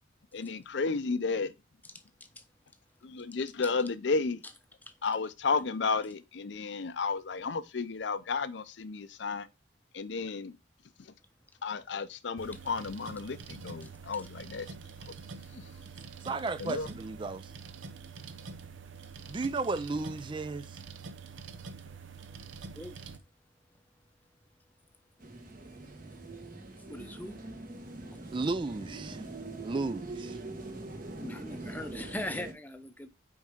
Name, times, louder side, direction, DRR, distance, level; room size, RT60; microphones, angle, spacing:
voice 1, 0.3-1.5 3.0-4.4 5.0-9.5 9.9-10.5 11.6-14.7 16.6-16.9, left 4 dB, 60° left, 0.5 m, -32 dB
sound 1, 12.4-23.2, right 5 dB, 75° right, 0.7 m, -46 dB
voice 2, 16.2-17.5 19.3-20.8 28.3-29.2 29.6-30.4, right 3 dB, 25° right, 0.3 m, -34 dB
sound 2, 25.2-32.5, right 2 dB, 45° right, 1.3 m, -43 dB
voice 3, 26.9-27.4 31.2-33.1, left 1 dB, 10° left, 0.7 m, -40 dB
5.2 x 4.7 x 5.0 m
head